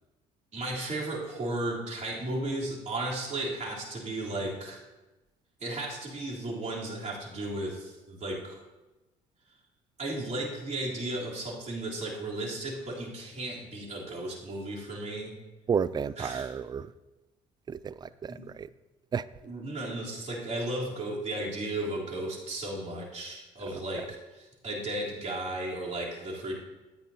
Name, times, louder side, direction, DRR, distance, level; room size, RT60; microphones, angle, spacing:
voice 1, 0.5-4.8 5.6-8.6 10.0-15.3 16.2-16.5 18.3-18.5 19.4-26.6, right 1 dB, 40° right, -4 dB, 3.4 m, -35 dB
voice 2, 15.7-16.9 17.7-18.7 19.1-19.2, right 6 dB, 25° right, 17 dB, 0.4 m, -31 dB
13.5 x 9.1 x 2.8 m, 1.1 s
hypercardioid pair, 55°, 18 cm